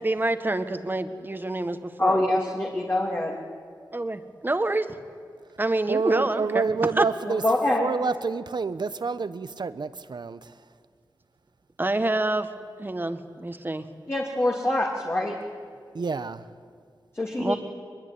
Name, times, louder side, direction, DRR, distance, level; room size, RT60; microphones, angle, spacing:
voice 1, 0.0-2.3 3.9-5.0 5.6-7.0 11.8-12.5 12.8-13.8 17.4-17.6, right 2 dB, 25° right, 9 dB, 1.6 m, -27 dB
voice 2, 2.0-3.4 7.4-7.9 14.1-15.3 17.1-17.6, left 1 dB, 35° left, -2 dB, 2.8 m, -24 dB
voice 3, 5.9-7.4 7.8-10.4 15.9-16.4, right 4 dB, 65° right, 13 dB, 1.0 m, -28 dB
23.5 x 22.0 x 9.7 m, 2.1 s
wide cardioid pair, 75°, 8 cm